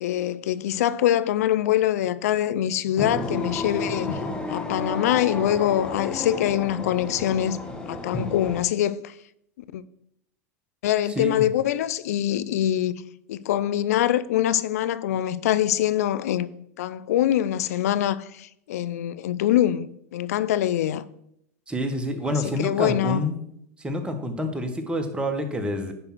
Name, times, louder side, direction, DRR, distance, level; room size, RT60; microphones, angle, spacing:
voice 1, 0.0-4.2 4.5-7.6 7.9-9.1 9.7-9.8 10.8-12.9 13.3-16.5 16.8-21.0 22.3-23.3, left 12 dB, 80° left, 0.5 m, -24 dB
sound 1, 3.0-8.6, left 2 dB, 10° left, 1.3 m, -32 dB
voice 2, 21.7-23.3 23.8-25.9, equal, 10° right, 1.4 m, -27 dB
10.0 x 3.6 x 6.1 m
hypercardioid pair, 110°, 8 cm